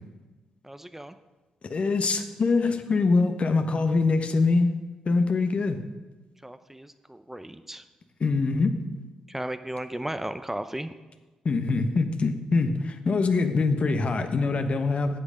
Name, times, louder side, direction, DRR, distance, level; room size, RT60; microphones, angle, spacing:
voice 1, 0.6-1.1 6.4-7.8 9.3-10.9, right 1 dB, 10° right, 10 dB, 0.6 m, -35 dB
voice 2, 1.6-4.7 5.0-5.8 8.2-8.8 11.4-15.2, left 3 dB, 45° left, 8 dB, 1.1 m, -24 dB
11.0 x 8.3 x 5.0 m, 1.2 s
hypercardioid pair, 40°, 3 cm